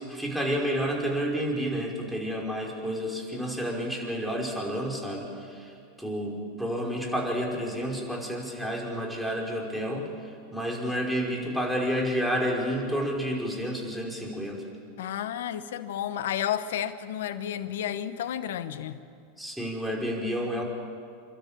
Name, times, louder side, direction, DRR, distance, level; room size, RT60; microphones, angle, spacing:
voice 1, 0.0-14.7 19.4-20.6, equal, ahead, -1 dB, 5.3 m, -30 dB
voice 2, 15.0-19.0, left 10 dB, 75° left, 13 dB, 1.0 m, -31 dB
29.0 x 12.5 x 8.9 m, 2.4 s
hypercardioid pair, 95°, 0 cm